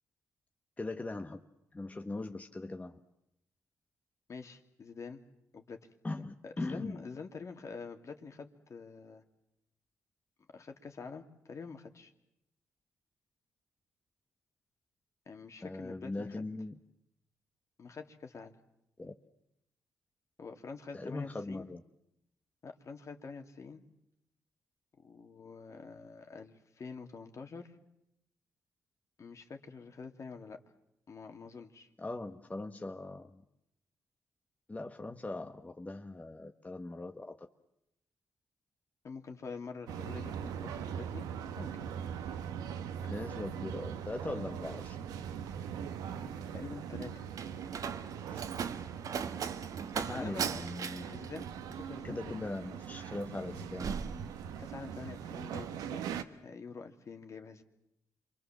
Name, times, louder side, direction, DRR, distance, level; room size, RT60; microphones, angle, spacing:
voice 1, 0.8-1.4 1.7-3.0 6.0-7.0 15.6-16.7 19.0-19.1 20.9-21.8 32.0-33.4 34.7-37.4 43.1-45.0 48.3-48.5 50.0-51.2 52.0-54.3, left 2 dB, 25° left, 4 dB, 1.5 m, -40 dB
voice 2, 4.3-5.2 5.5-5.8 6.4-9.2 10.5-12.1 15.3-16.5 17.8-18.5 20.4-21.7 22.6-23.8 25.0-27.8 29.2-30.6 31.1-31.9 39.0-41.3 41.6-41.8 42.2-42.3 43.0-43.2 46.5-47.3 49.9-50.4 51.1-52.5 54.6-56.1 56.4-57.6, left 5 dB, 55° left, 5 dB, 2.7 m, -46 dB
sound 1, 39.9-56.2, right 8 dB, 90° right, 1.3 m, -41 dB
Slam, 46.5-55.0 55.3-55.7, right 7 dB, 65° right, 1.4 m, -40 dB
27.5 x 23.5 x 7.5 m, 0.82 s
supercardioid pair, 55°, 6 cm